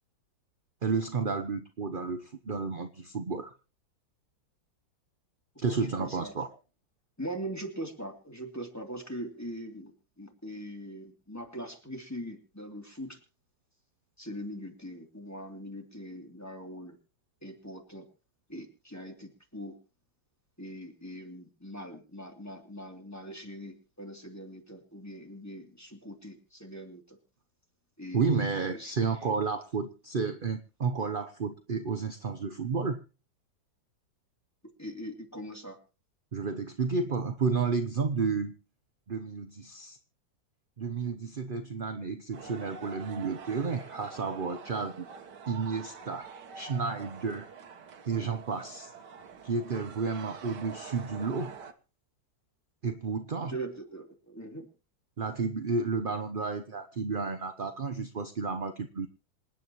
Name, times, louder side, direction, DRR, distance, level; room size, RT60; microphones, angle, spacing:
voice 1, 0.8-3.5 5.6-6.5 28.1-33.0 36.3-38.5 39.1-40.0 40.8-45.1 45.5-46.3 46.5-47.5 48.0-48.9 49.4-51.5 52.8-53.6 55.2-59.1, right 5 dB, 40° right, 7 dB, 0.7 m, -31 dB
voice 2, 5.7-6.3 7.2-9.9 10.2-13.2 14.2-17.0 17.4-18.0 18.5-19.8 20.6-27.2 28.0-28.2 28.7-29.0 34.8-35.8 53.4-54.7, right 1 dB, 10° left, 2 dB, 2.9 m, -41 dB
sound 1, 42.3-51.7, right 6 dB, 65° right, 1.8 m, -46 dB
27.0 x 9.2 x 3.0 m, 0.34 s
omnidirectional pair, 2.0 m